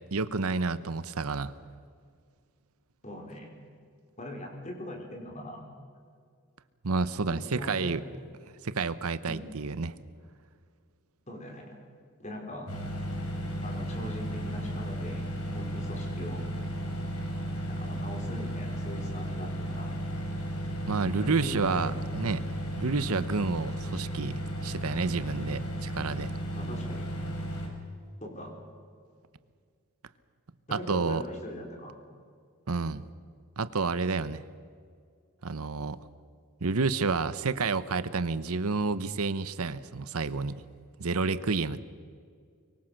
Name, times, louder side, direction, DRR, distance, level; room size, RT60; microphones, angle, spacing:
voice 1, 0.1-1.5 6.8-8.0 8.6-10.0 20.9-22.4 22.8-26.3 30.7-31.2 32.7-33.1 33.6-34.4 35.4-36.0 36.6-40.6 41.0-41.8, right 4 dB, 80° right, 15 dB, 0.9 m, -30 dB
voice 2, 3.0-3.6 4.2-5.6 7.3-8.1 9.2-9.5 11.3-11.8 12.2-12.7 13.6-16.4 17.7-20.0 21.2-22.0 26.5-27.1 28.2-28.5 30.7-31.9, left 1 dB, 30° left, 2 dB, 4.5 m, -41 dB
sound 1, 12.7-27.7, equal, 85° left, 5.1 m, -34 dB
24.0 x 23.5 x 6.5 m, 2.1 s
head